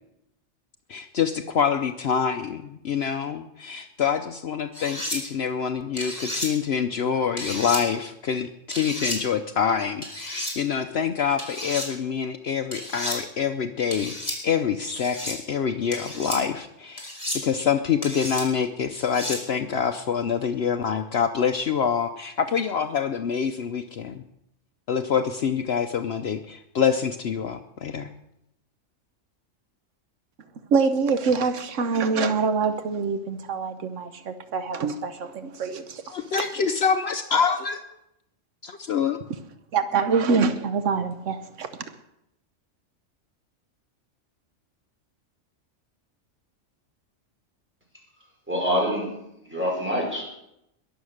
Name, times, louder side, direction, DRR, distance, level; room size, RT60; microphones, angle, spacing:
voice 1, 0.9-17.0 17.3-24.2 24.9-28.1 36.1-37.8 38.6-39.2, left 7 dB, 60° left, 8 dB, 0.9 m, -26 dB
sound 1, 4.7-5.2 6.0-6.5 7.4-7.8 8.7-9.2 10.0-10.5 11.4-11.9 12.7-13.2 13.9-14.4 15.0-15.4 15.9-16.4 17.0-17.4 18.0-18.4 18.9-19.4, left 1 dB, 30° left, 4.2 m, -32 dB
voice 2, 30.7-36.0 39.7-41.7, right 5 dB, 80° right, 10 dB, 1.2 m, -25 dB
voice 3, 48.5-49.1 49.5-50.2, equal, 10° right, -2 dB, 5.5 m, -25 dB
21.5 x 7.3 x 6.5 m, 0.82 s
omnidirectional pair, 1.3 m